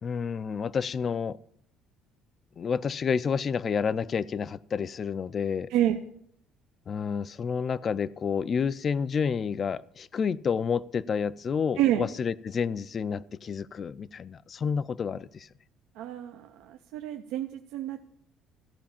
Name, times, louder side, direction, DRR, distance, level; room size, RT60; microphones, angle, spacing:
voice 1, 0.0-1.4 2.6-5.7 6.9-15.5, left 6 dB, 30° left, 0.3 m, -29 dB
voice 2, 16.0-18.1, right 12 dB, 80° right, 0.6 m, -28 dB
14.5 x 5.1 x 7.1 m
cardioid pair, 160°, 0 cm